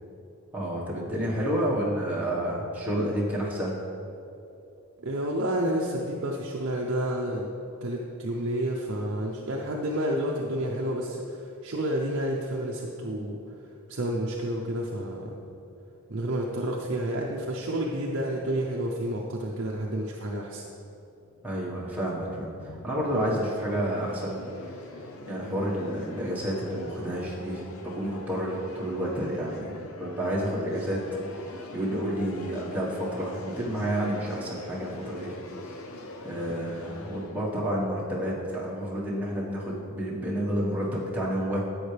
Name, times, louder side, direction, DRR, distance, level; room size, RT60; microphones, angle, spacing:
voice 1, 0.5-3.8 21.4-24.4 25.3-31.0 31.5-35.3 36.2-41.6, equal, 5° right, -6 dB, 1.4 m, -30 dB
voice 2, 5.0-7.5 7.8-13.4 13.9-15.4 16.1-20.6, right 1 dB, 55° right, -2 dB, 0.7 m, -30 dB
sound 1, 21.2-39.0, left 2 dB, 70° left, 0.6 m, -43 dB
11.0 x 8.0 x 3.4 m, 2.8 s
head